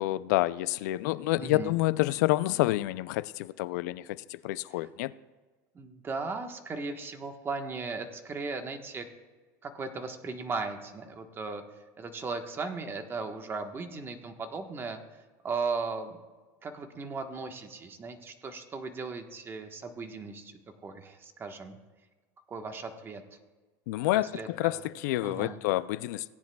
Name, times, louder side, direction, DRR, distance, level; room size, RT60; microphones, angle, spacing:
voice 1, 0.0-5.1 23.9-26.3, left 17 dB, 80° left, 17 dB, 0.4 m, -28 dB
voice 2, 1.4-1.7 4.8-4.9 5.7-9.0 9.6-16.2 16.6-21.8 22.5-23.2 24.3-24.8 25.2-25.6, right 4 dB, 25° right, 6 dB, 1.2 m, -37 dB
17.5 x 10.0 x 2.3 m, 1.3 s
supercardioid pair, 125°, 9 cm